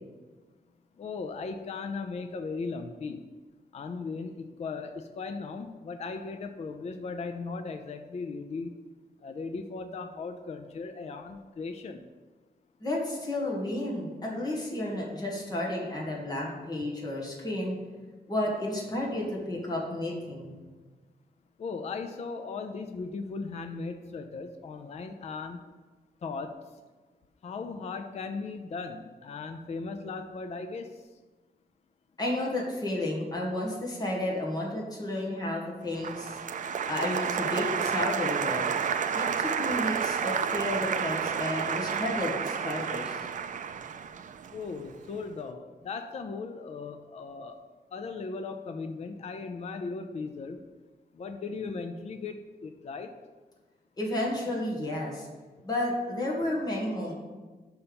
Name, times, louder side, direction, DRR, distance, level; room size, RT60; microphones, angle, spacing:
voice 1, 1.0-3.2 3.7-8.8 9.2-12.0 21.6-25.6 26.2-26.6 27.4-31.0 44.5-47.6 47.9-50.6 51.1-53.1, left 4 dB, 40° left, 7 dB, 0.4 m, -37 dB
voice 2, 12.8-17.8 18.3-20.5 32.2-36.4 36.9-38.7 39.1-43.3 54.0-55.3 55.6-57.1, left 1 dB, 25° left, -3 dB, 1.7 m, -32 dB
Applause, 36.0-45.1, right 7 dB, 50° right, 0.4 m, -30 dB
5.6 x 5.5 x 6.8 m, 1.3 s
wide cardioid pair, 165°, 17 cm